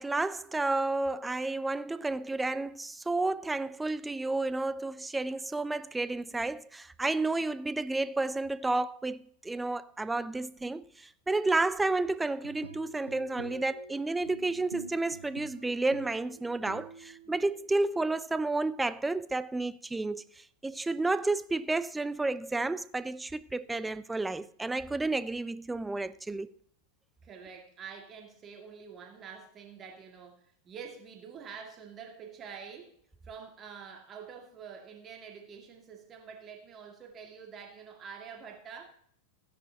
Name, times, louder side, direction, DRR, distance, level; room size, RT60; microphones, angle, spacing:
voice 1, 0.0-26.5, right 2 dB, 10° right, 0.4 m, -31 dB
sound 1, 12.2-17.8, right 2 dB, 80° right, 0.9 m, -48 dB
voice 2, 27.2-32.9 33.2-38.8, right 6 dB, 25° right, 2.2 m, -47 dB
15.5 x 10.0 x 2.9 m
figure-of-eight pair, 90°, 0 cm